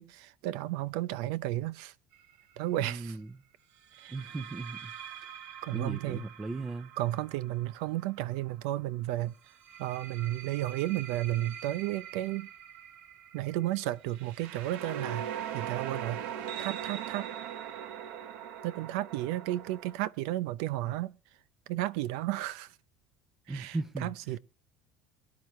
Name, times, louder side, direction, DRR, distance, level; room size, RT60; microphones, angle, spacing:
voice 1, 0.0-1.9 2.6-3.2 4.0-4.1 5.6-6.2 7.0-9.3 9.8-12.5 13.3-15.3 15.5-16.2 16.6-17.3 18.6-21.1 21.7-22.7 23.5-24.4, right 15 dB, 80° right, 0.7 m, -33 dB
sound 1, 2.1-2.4 3.9-8.7 9.5-20.0, right 9 dB, 65° right, 1.2 m, -42 dB
voice 2, 2.8-3.4 4.1-4.9 5.7-6.9 23.5-24.1, right 3 dB, 15° right, 0.7 m, -37 dB
23.0 x 10.5 x 3.2 m
cardioid pair, 130°, 3 cm